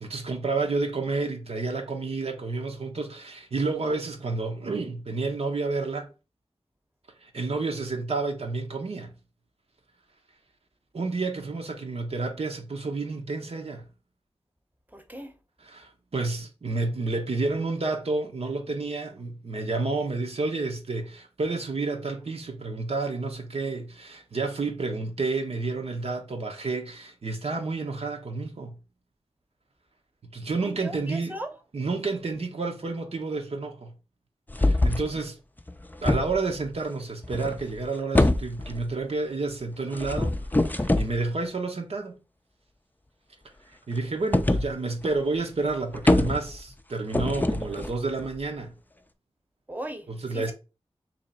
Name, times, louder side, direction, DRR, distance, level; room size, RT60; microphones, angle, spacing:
voice 1, 0.0-6.1 7.2-9.1 10.9-13.9 15.6-28.8 30.3-31.4 31.7-33.9 34.6-35.4 36.0-42.2 43.9-48.7 50.1-50.5, right 3 dB, 70° right, 0.8 m, -30 dB
voice 2, 14.9-15.4 30.6-31.5 49.7-50.1 50.3-50.5, right 1 dB, 15° right, 0.8 m, -37 dB
sound 1, 34.5-35.1 35.6-36.7 37.2-37.8 38.1-38.9 39.9-41.2 44.3-44.7 45.0-45.1 45.4-45.5 45.7-46.7 47.1-48.4, left 2 dB, 15° left, 0.4 m, -24 dB
2.9 x 2.8 x 4.1 m
cardioid pair, 45°, 11 cm